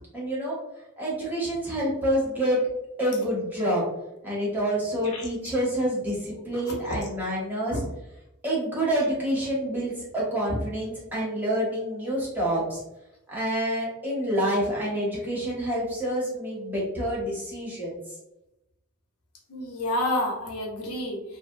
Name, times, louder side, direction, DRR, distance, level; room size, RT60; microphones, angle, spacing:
voice 1, 0.1-0.6 1.0-2.6 3.0-3.8 4.2-7.7 8.4-12.8 13.3-18.0, equal, 10° right, -6 dB, 0.8 m, -27 dB
voice 2, 19.5-21.2, left 1 dB, 85° left, -1 dB, 0.8 m, -29 dB
2.6 x 2.1 x 2.5 m, 0.91 s
head